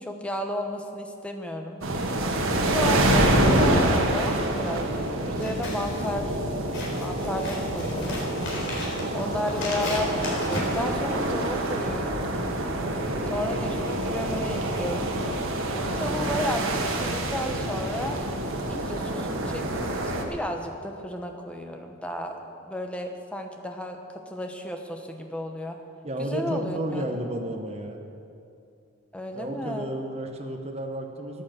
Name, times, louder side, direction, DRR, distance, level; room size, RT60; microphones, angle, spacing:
voice 1, 0.0-1.8 2.6-6.4 6.9-8.2 9.1-12.2 13.3-15.1 16.0-18.2 18.6-24.0 24.3-25.8 26.2-27.2 29.1-29.9, equal, 5° left, 4 dB, 1.1 m, -33 dB
sound 1, 1.8-20.2, right 1 dB, 90° right, 1.5 m, -26 dB
Scissors, 5.3-11.5, left 2 dB, 65° left, 3.8 m, -36 dB
voice 2, 26.0-28.0 29.3-31.4, right 1 dB, 30° right, 3 dB, 1.1 m, -32 dB
14.0 x 9.4 x 7.5 m, 2.6 s
head